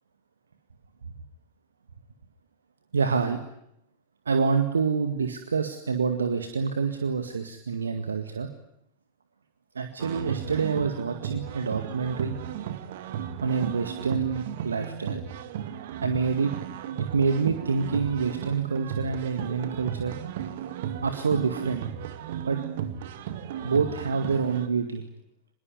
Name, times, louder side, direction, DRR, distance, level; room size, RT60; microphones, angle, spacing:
voice 1, 2.9-3.4 4.3-8.5 9.8-12.3 13.4-15.3 16.0-16.5 17.0-20.1 21.0-21.8 22.4-22.6 23.6-25.0, right 5 dB, 70° right, 7 dB, 2.0 m, -27 dB
sound 1, 10.0-24.7, right 9 dB, 55° right, 2.0 m, -35 dB
25.0 x 22.0 x 9.6 m, 0.78 s
figure-of-eight pair, 90°, 0 cm